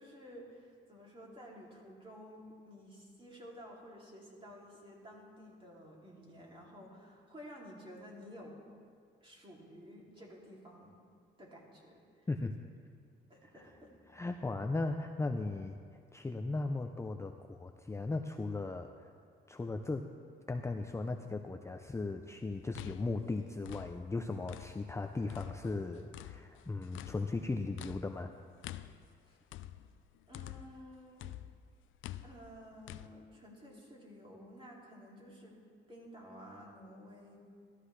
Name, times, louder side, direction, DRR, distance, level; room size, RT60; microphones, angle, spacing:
voice 1, 0.0-8.6 9.2-10.9 11.4-12.0 13.3-13.9 29.3-29.4 30.3-31.3 32.2-35.6 35.9-37.4, equal, 25° right, -3 dB, 2.8 m, -52 dB
voice 2, 14.1-15.8 16.1-19.1 19.5-20.0 20.5-28.3, left 3 dB, 15° left, 5 dB, 0.5 m, -37 dB
sound 1, 22.5-25.0 25.3-30.9 31.2-33.1, left 13 dB, 80° left, 0.4 m, -48 dB
13.5 x 13.0 x 3.3 m, 2.1 s
cardioid pair, 90°, 20 cm